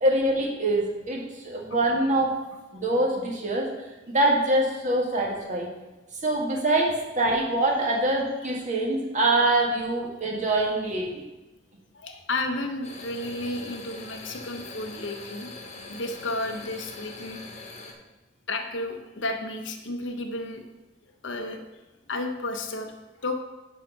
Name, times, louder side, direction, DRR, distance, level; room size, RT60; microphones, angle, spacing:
voice 1, 0.0-2.3 2.7-3.7 4.1-5.7 6.2-11.1, right 1 dB, 40° right, -1 dB, 1.7 m, -24 dB
voice 2, 11.9-15.5 15.9-17.4 18.5-20.6 21.2-21.8 22.1-22.9 23.2-23.4, left 2 dB, 85° left, 5 dB, 1.1 m, -32 dB
sound 1, 12.8-17.9, left 3 dB, 35° left, 1.3 m, -42 dB
9.2 x 4.1 x 6.0 m, 1.1 s
head